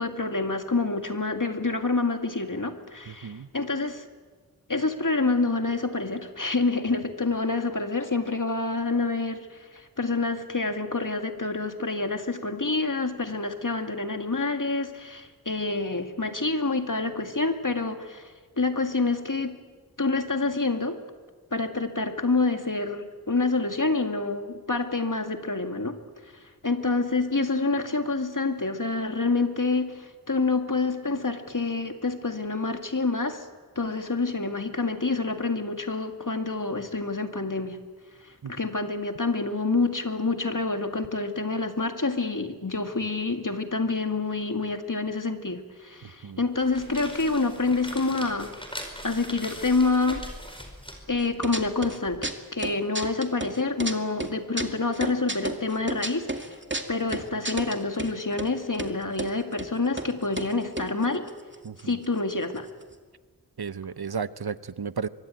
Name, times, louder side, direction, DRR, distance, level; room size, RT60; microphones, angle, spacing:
voice 1, 0.0-4.1 4.7-19.6 20.0-21.0 21.5-26.0 26.3-33.4 33.8-37.8 38.2-48.5 49.0-50.3 51.1-56.6 56.9-61.3 61.8-62.7, left 3 dB, 55° left, 6 dB, 2.2 m, -27 dB
sound 1, 46.5-52.2, equal, 15° left, 4.9 m, -41 dB
sound 2, 51.2-52.0 52.2-53.9 54.2-58.1 58.4-58.5 58.7-59.3 59.6-59.7 60.0-60.1 60.4-62.0 62.3-62.4 62.6-62.9, right 2 dB, 30° right, 2.2 m, -32 dB
voice 2, 63.6-65.1, right 6 dB, 85° right, 15 dB, 0.8 m, -33 dB
23.5 x 23.5 x 9.1 m, 1.5 s
wide cardioid pair, 45°, 37 cm